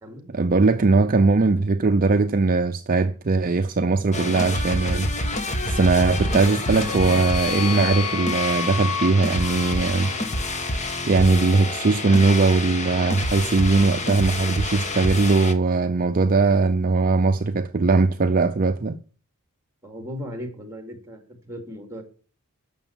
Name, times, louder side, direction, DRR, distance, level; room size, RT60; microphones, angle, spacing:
voice 1, 0.3-10.1 11.1-19.0, right 3 dB, 40° right, 0.5 m, -20 dB
sound 1, 4.1-15.5, left 2 dB, 30° left, 1.2 m, -28 dB
sound 2, 6.1-10.5, left 7 dB, 70° left, 0.5 m, -32 dB
voice 2, 19.8-22.0, equal, 15° right, 2.6 m, -37 dB
11.5 x 7.0 x 7.0 m
head